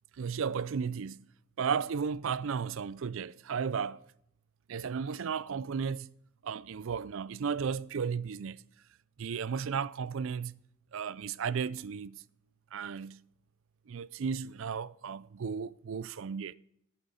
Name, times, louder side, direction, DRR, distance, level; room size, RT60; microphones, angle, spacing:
voice 1, 0.2-1.2 1.6-4.0 4.7-6.1 6.4-8.6 9.2-10.6 10.9-12.2 12.7-13.2 13.9-16.5, right 6 dB, 65° right, 0.4 m, -34 dB
11.0 x 9.0 x 5.1 m
head